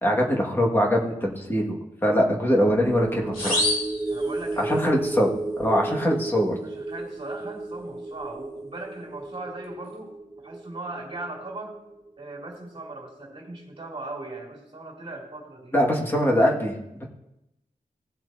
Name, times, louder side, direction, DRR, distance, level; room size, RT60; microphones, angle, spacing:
voice 1, 0.0-3.7 4.6-5.3 5.6-6.6 15.7-17.0, equal, 15° left, -1 dB, 1.8 m, -23 dB
sound 1, 2.7-13.3 13.6-13.8, right 2 dB, 5° right, 1.3 m, -34 dB
sound 2, 3.3-4.9, left 2 dB, 75° left, 2.7 m, -28 dB
voice 2, 4.1-5.1 5.8-6.0 6.6-11.8 12.2-15.7, right 2 dB, 35° right, -2 dB, 2.8 m, -39 dB
17.5 x 7.5 x 2.7 m, 0.87 s
wide cardioid pair, 155°, 15 cm